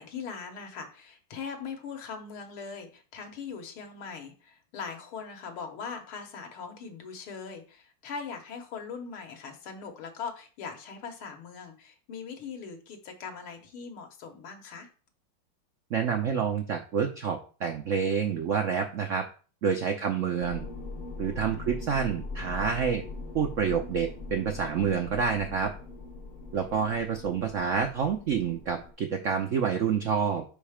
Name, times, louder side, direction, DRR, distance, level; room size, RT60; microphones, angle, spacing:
voice 1, 0.0-14.9 19.9-20.2 26.6-26.7, left 5 dB, 80° left, 3 dB, 2.0 m, -41 dB
voice 2, 15.9-19.2 19.6-20.7 21.2-23.0 23.3-25.7 26.5-30.4, right 6 dB, 80° right, 5 dB, 0.6 m, -28 dB
sound 1, 20.4-28.9, left 3 dB, 45° left, 0.6 m, -41 dB
5.5 x 5.2 x 5.0 m, 0.38 s
omnidirectional pair, 2.3 m